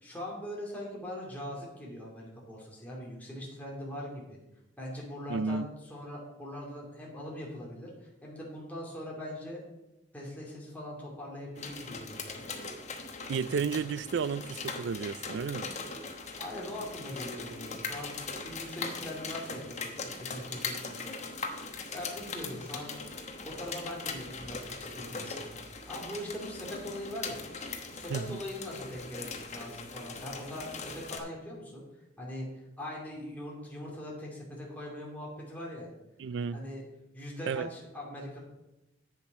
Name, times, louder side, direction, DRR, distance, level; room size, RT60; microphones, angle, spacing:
voice 1, 0.0-4.2 4.8-9.6 10.1-12.4 16.4-21.2 21.4-22.9 23.4-27.5 27.9-31.8 32.2-32.5 32.8-35.9 36.5-36.8 37.1-38.4, left 1 dB, 10° left, 2.6 m, -41 dB
voice 2, 5.3-5.7 13.3-15.7 28.1-28.4 36.2-36.6 37.5-37.7, right 5 dB, 75° right, 0.4 m, -32 dB
sound 1, 11.6-31.2, left 4 dB, 40° left, 1.1 m, -40 dB
8.0 x 7.2 x 5.7 m
head